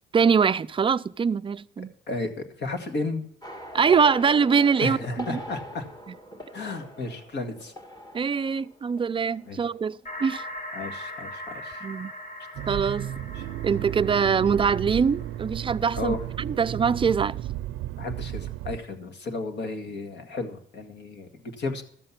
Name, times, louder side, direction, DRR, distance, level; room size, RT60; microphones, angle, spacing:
voice 1, 0.1-1.9 3.7-5.4 8.1-10.4 11.8-12.1 12.7-13.1 13.6-17.4, right 6 dB, 25° right, 0.4 m, -23 dB
voice 2, 2.1-3.3 4.8-5.9 6.5-7.7 9.5-9.6 10.7-11.8 13.4-13.5 16.0-16.3 18.0-21.8, left 3 dB, 60° left, 1.9 m, -33 dB
sound 1, 3.4-9.9 10.1-10.5, equal, 20° left, 1.7 m, -41 dB
sound 2, 10.1-15.8, left 1 dB, 40° left, 2.6 m, -40 dB
Accelerating revving vroom, 12.6-18.8, right 13 dB, 85° right, 0.5 m, -33 dB
13.0 x 7.7 x 5.8 m
cardioid pair, 90°, 20 cm